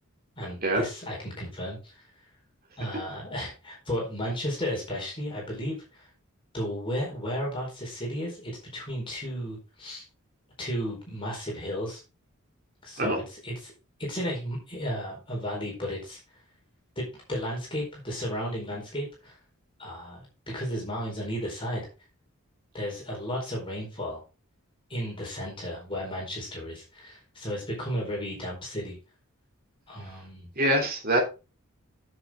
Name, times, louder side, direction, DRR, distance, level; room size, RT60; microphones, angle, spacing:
voice 1, 0.4-2.0 2.8-6.1 6.5-10.0 10.6-12.0 12.8-13.7 14.0-16.2 17.0-19.4 19.8-20.2 20.5-21.8 22.7-24.2 24.9-29.0 29.9-30.5, equal, 25° left, -2 dB, 4.5 m, -34 dB
voice 2, 30.5-31.2, right 1 dB, 45° right, 1 dB, 3.2 m, -24 dB
9.7 x 7.1 x 3.8 m, 0.30 s
head